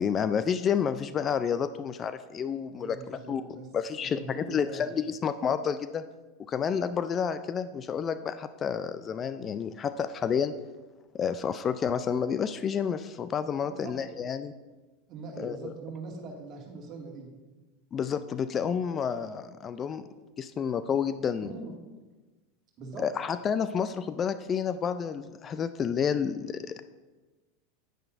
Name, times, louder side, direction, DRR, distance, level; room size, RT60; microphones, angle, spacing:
voice 1, 0.0-3.4 3.7-6.0 6.5-10.5 11.1-14.5 15.4-15.7 17.9-20.0 20.4-21.5 23.0-26.8, left 7 dB, 30° left, 12 dB, 0.4 m, -30 dB
voice 2, 2.7-3.7 4.1-4.8 13.6-13.9 15.1-17.3 21.4-21.7 22.8-23.0, right 3 dB, 45° right, 0 dB, 2.1 m, -42 dB
9.6 x 9.2 x 2.6 m, 1.2 s
hypercardioid pair, 90°, 0 cm